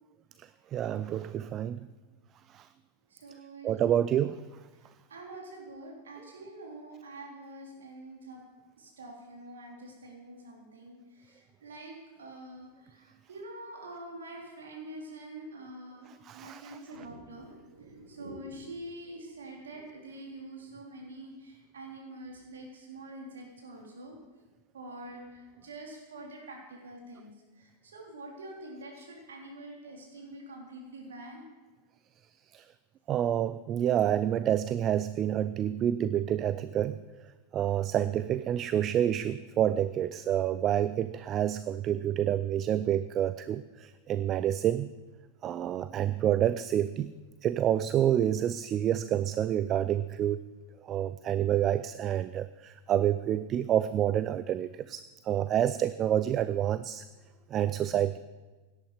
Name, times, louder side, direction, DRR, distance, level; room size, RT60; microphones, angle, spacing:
voice 1, 0.7-1.8 2.5-2.7 3.6-4.4 16.2-16.8 32.5-32.6 33.1-37.0 37.5-44.9 45.4-47.1 47.4-50.4 50.9-57.0 57.5-58.2, right 10 dB, 30° right, 15 dB, 0.4 m, -28 dB
voice 2, 3.1-4.2 5.1-8.4 8.8-24.2 24.7-31.4, right 1 dB, 65° right, 0 dB, 3.7 m, -46 dB
17.5 x 11.5 x 5.0 m, 1.2 s
figure-of-eight pair, 90°, 0 cm